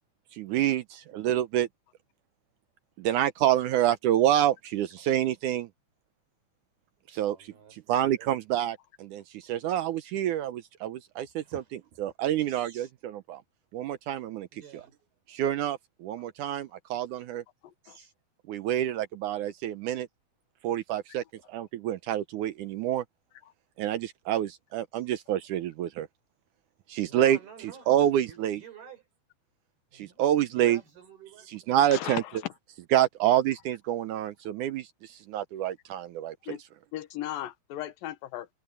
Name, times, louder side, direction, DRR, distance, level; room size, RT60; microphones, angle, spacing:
voice 1, 0.3-1.7 3.0-5.7 7.1-7.4 7.7-11.6 12.0-13.4 13.7-14.8 15.3-17.4 18.5-20.1 20.6-21.2 21.5-23.0 23.8-26.1 26.9-27.4 27.9-28.6 29.9-30.8 31.5-32.2 32.9-36.6, right 11 dB, 85° right, 1.7 m, -27 dB
voice 2, 7.1-8.3 11.4-11.7 12.5-12.9 14.5-14.9 17.8-18.1 18.6-18.7 24.9-25.1 27.0-29.1 29.9-30.2 30.5-31.5, right 6 dB, 65° right, 6.7 m, -50 dB
voice 3, 17.6-18.0 31.9-32.5 36.5-36.6 36.9-38.5, left 13 dB, 70° left, 2.5 m, -36 dB
omnidirectional pair, 4.7 m